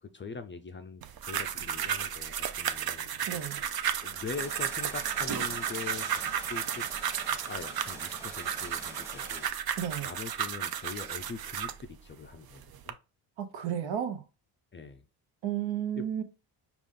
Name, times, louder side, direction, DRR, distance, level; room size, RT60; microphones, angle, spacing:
voice 1, 0.0-3.5 4.0-6.8 7.4-9.8 10.0-13.0 14.7-15.0 15.9-16.2, left 5 dB, 25° left, 0.4 m, -42 dB
sound 1, 1.0-11.8 12.4-12.9, right 9 dB, 50° right, 0.6 m, -33 dB
voice 2, 3.3-3.6 9.8-10.1 13.4-14.2 15.4-16.2, right 10 dB, 70° right, 1.1 m, -32 dB
sound 2, 4.3-9.5, right 1 dB, 5° right, 1.1 m, -47 dB
5.1 x 2.4 x 3.6 m
cardioid pair, 90°, 47 cm